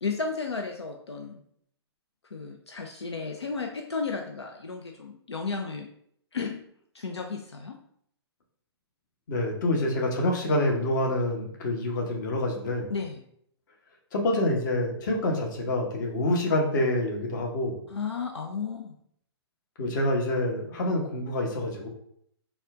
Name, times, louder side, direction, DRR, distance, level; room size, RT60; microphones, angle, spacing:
voice 1, 0.0-1.4 2.3-5.9 6.3-6.6 6.9-7.8 12.9-13.2 17.9-19.0, left 4 dB, 80° left, 3 dB, 0.4 m, -33 dB
voice 2, 9.3-12.9 14.1-17.8 19.8-21.9, left 1 dB, 45° left, 0 dB, 1.0 m, -27 dB
4.2 x 2.3 x 3.5 m, 0.68 s
figure-of-eight pair, 120°, 14 cm